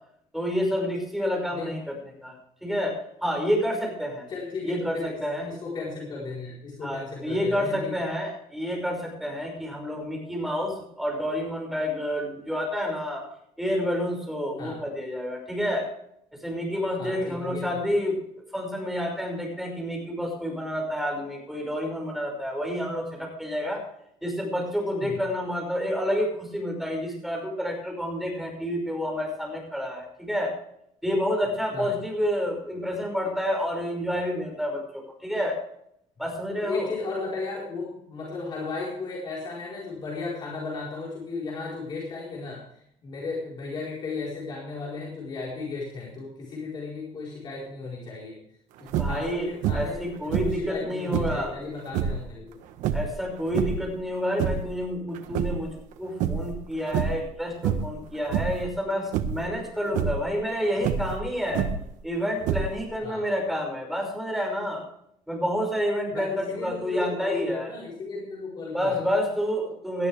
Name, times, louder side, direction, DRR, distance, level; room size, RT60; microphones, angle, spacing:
voice 1, 0.3-2.3 2.6-4.3 4.6-5.5 6.8-13.2 13.6-15.8 16.4-18.2 18.5-23.8 24.2-30.5 31.0-35.6 36.2-36.9 48.9-51.5 52.9-55.7 56.0-61.7 62.0-64.8 65.3-67.7 68.7-70.1, equal, ahead, 0 dB, 5.6 m, -29 dB
voice 2, 4.3-7.9 14.6-14.8 17.0-17.8 25.0-25.2 31.7-32.0 36.6-48.4 48.8-52.6 63.0-63.3 66.1-69.0, left 4 dB, 35° left, -4 dB, 4.4 m, -35 dB
sound 1, 48.9-49.3 49.6-50.0 50.3-51.5 51.9-52.2 52.8-53.9 54.3-54.8 55.2-55.9 56.2-56.6 56.9-57.3 57.6-58.0 58.3-58.7 59.1-59.5 59.9-60.2 60.8-61.9 62.4-63.0, right 8 dB, 80° right, 1.4 m, -27 dB
18.5 x 13.0 x 3.4 m, 0.72 s
cardioid pair, 165°, 13 cm